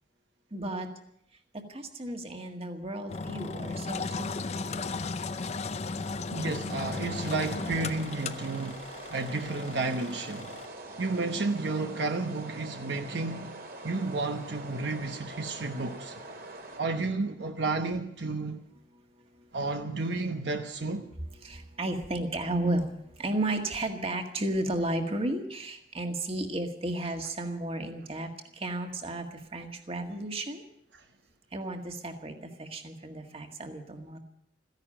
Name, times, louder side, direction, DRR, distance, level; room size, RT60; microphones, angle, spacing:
voice 1, 0.5-0.9 1.7-4.2 21.4-22.9 23.2-28.3 28.6-29.2 29.5-30.6 31.5-32.3 32.6-34.2, right 1 dB, 30° right, 1.8 m, -33 dB
Engine, 3.1-10.7, left 3 dB, 35° left, 0.6 m, -36 dB
voice 2, 6.3-8.8 9.1-10.6 11.0-13.6 13.8-16.2 16.8-18.6 19.5-21.1, right 3 dB, 70° right, 1.0 m, -32 dB
sound 1, 6.7-16.8, right 2 dB, 55° right, 2.3 m, -44 dB
15.0 x 10.5 x 8.8 m
head